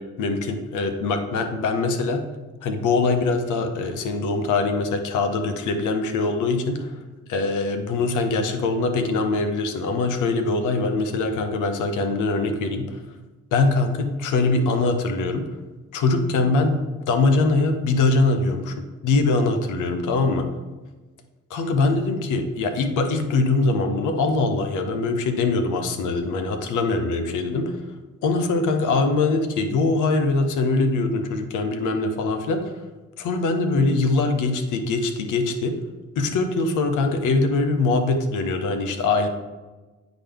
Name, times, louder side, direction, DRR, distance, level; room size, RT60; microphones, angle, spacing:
voice 1, 0.2-2.2 2.6-6.9 7.3-13.0 13.5-15.5 15.9-18.8 19.0-20.5 21.5-27.7 28.2-32.6 33.2-35.8 36.2-39.3, left 3 dB, 85° left, 7 dB, 0.9 m, -22 dB
9.9 x 4.0 x 3.5 m, 1.2 s
cardioid pair, 90°, 30 cm